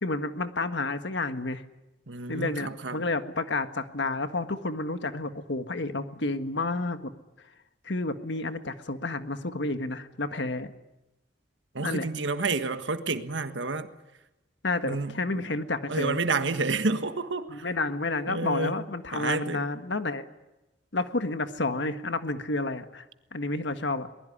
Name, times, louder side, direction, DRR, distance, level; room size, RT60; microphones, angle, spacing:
voice 1, 0.0-1.6 2.3-7.1 7.8-10.7 11.8-12.1 14.6-16.2 17.5-20.2 20.9-23.0 23.3-24.1, left 2 dB, 70° left, 1.6 m, -30 dB
voice 2, 2.1-3.0 11.7-13.9 14.8-15.4 15.9-17.6 18.3-18.7 19.1-19.6, right 3 dB, 80° right, 1.6 m, -29 dB
23.0 x 20.5 x 10.0 m
head